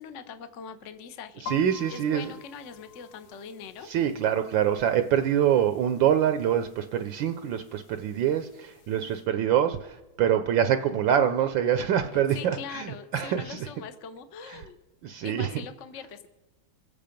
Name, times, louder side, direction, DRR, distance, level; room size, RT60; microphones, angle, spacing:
voice 1, 0.0-1.4 1.9-3.9 12.1-14.8 15.2-16.3, left 6 dB, 55° left, 9 dB, 0.8 m, -42 dB
voice 2, 1.4-2.3 3.8-13.7 14.4-14.7 15.0-15.6, right 9 dB, 70° right, 9 dB, 1.2 m, -25 dB
sound 1, 1.5-9.3, left 5 dB, 80° left, 1.7 m, -48 dB
25.0 x 8.6 x 5.2 m, 1.1 s
omnidirectional pair, 2.4 m